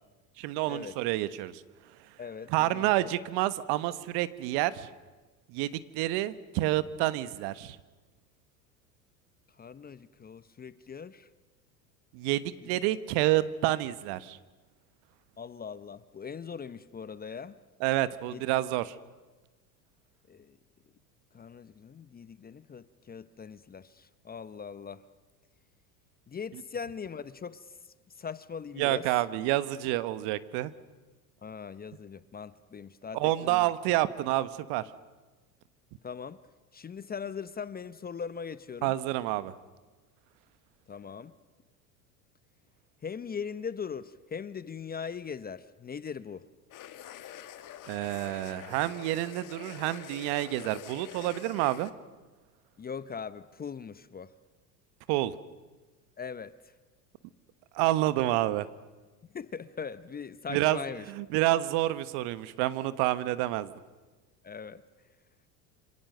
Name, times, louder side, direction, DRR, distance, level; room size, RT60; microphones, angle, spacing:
voice 1, 0.4-1.6 2.5-4.9 5.5-7.8 12.1-14.4 17.8-18.9 28.8-30.7 33.1-34.8 38.8-39.5 47.9-51.9 55.1-55.3 57.7-58.7 60.5-60.8 61.1-63.7, right 16 dB, 55° right, 14 dB, 1.3 m, -28 dB
voice 2, 2.2-3.1 9.6-11.3 12.6-12.7 15.4-17.6 18.3-18.4 20.3-20.6 21.3-25.0 26.3-27.7 28.2-29.1 31.4-33.7 36.0-36.4 36.7-38.9 40.9-41.3 43.0-46.5 52.8-54.3 56.2-56.5 59.3-61.1 64.4-64.8, left 6 dB, 20° left, 15 dB, 0.8 m, -40 dB
sound 1, 46.7-51.9, left 11 dB, 40° left, 1.5 m, -46 dB
27.0 x 26.0 x 6.7 m, 1.2 s
hypercardioid pair, 80°, 48 cm